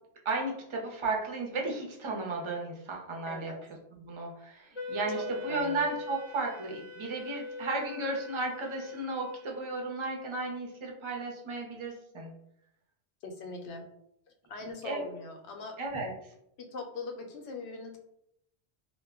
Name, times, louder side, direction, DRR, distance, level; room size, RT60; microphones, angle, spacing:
voice 1, 0.2-3.5 4.0-12.3 14.6-15.0 15.8-16.1, right 2 dB, 40° right, 0 dB, 0.4 m, -34 dB
voice 2, 3.3-3.6 5.1-5.8 13.2-13.8 14.5-15.8 16.6-18.0, left 3 dB, 80° left, 3 dB, 0.9 m, -41 dB
Wind instrument woodwind instrument, 4.8-9.9, left 1 dB, 35° left, 0.5 m, -41 dB
2.2 x 2.1 x 3.4 m, 0.75 s
omnidirectional pair, 1.1 m